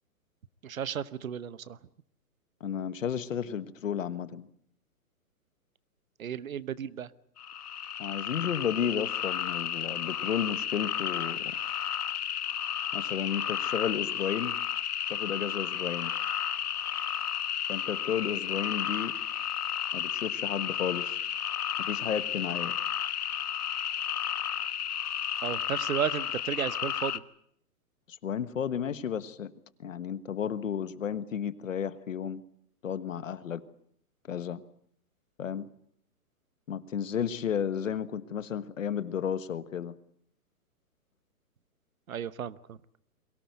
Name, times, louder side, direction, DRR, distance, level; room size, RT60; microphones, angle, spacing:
voice 1, 0.6-1.8 6.2-7.1 25.4-27.2 42.1-42.8, right 8 dB, 60° right, 18 dB, 1.0 m, -34 dB
voice 2, 2.6-4.5 8.0-11.6 12.9-14.6 15.1-16.1 17.7-19.1 19.9-21.2 21.8-22.8 28.1-29.5 29.8-32.4 32.8-33.6 34.3-34.6 35.4-35.7 36.7-39.9, left 8 dB, 55° left, 14 dB, 1.4 m, -33 dB
sound 1, 7.4-27.2, left 9 dB, 75° left, 1.3 m, -32 dB
23.0 x 17.5 x 9.3 m, 0.67 s
hypercardioid pair, 175°, 46 cm